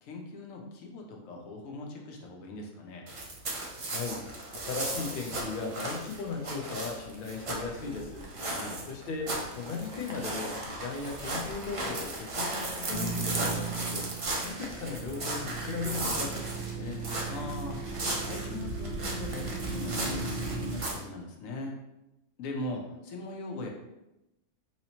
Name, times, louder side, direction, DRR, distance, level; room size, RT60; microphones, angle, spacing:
voice 1, 0.0-3.1 8.5-8.8 17.3-17.9 18.2-21.8 22.4-23.7, left 2 dB, 75° left, 1 dB, 1.0 m, -40 dB
sound 1, 3.1-20.9, right 2 dB, 55° right, 0.3 m, -36 dB
voice 2, 3.9-4.2 4.5-8.3 8.9-14.1 14.4-17.0, left 4 dB, 55° left, 1 dB, 0.6 m, -37 dB
sound 2, 12.9-14.3 14.6-20.7, right 4 dB, 35° right, 0.8 m, -37 dB
4.1 x 2.8 x 2.8 m, 0.92 s
omnidirectional pair, 1.4 m